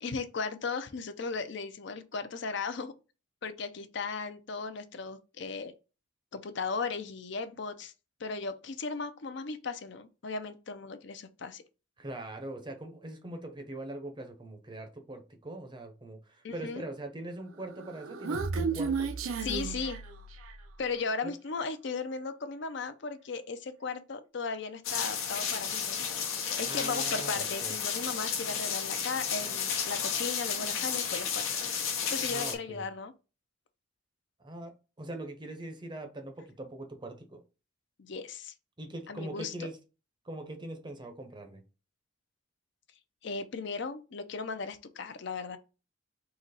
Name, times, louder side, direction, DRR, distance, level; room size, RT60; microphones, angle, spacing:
voice 1, 0.0-2.9 3.4-5.7 6.3-7.9 8.2-11.6 16.4-16.8 19.4-20.0 20.8-26.0 26.6-31.7 32.1-33.1 38.0-38.5 39.1-39.7 43.2-45.6, left 4 dB, 60° left, 0.5 m, -36 dB
voice 2, 12.0-19.1 21.2-21.3 26.6-27.7 32.2-32.9 34.4-34.7 35.0-37.4 38.8-39.8 40.2-41.6, right 1 dB, 20° right, 0.6 m, -42 dB
Human voice, 17.7-20.7, right 5 dB, 90° right, 0.6 m, -33 dB
sound 1, 24.8-32.5, left 7 dB, 85° left, 1.0 m, -32 dB
3.9 x 2.9 x 4.0 m
head